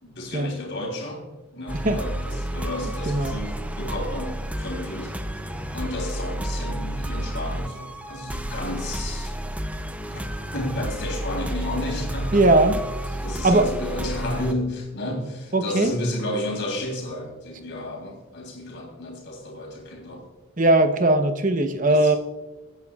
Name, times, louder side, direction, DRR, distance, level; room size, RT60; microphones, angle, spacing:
voice 1, 0.0-9.4 10.1-12.4 13.2-20.2 21.9-22.2, left 1 dB, 55° left, 1 dB, 3.4 m, -32 dB
sound 1, 1.7-14.5, right 1 dB, 5° right, 0.5 m, -31 dB
voice 2, 3.1-3.4 12.3-12.8 13.4-13.7 15.5-15.9 20.6-22.1, right 2 dB, 35° right, 7 dB, 0.9 m, -19 dB
21.0 x 9.2 x 2.4 m, 1.2 s
head